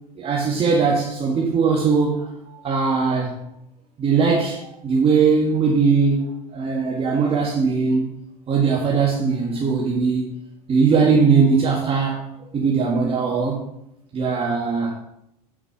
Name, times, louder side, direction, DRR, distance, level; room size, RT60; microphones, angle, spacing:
voice 1, 0.2-3.3 4.0-6.2 6.5-8.1 8.5-10.2 10.7-12.2 12.5-13.6 14.1-14.9, right 5 dB, 30° right, -3 dB, 1.7 m, -20 dB
8.9 x 5.2 x 4.8 m, 0.79 s
hypercardioid pair, 90°, 19 cm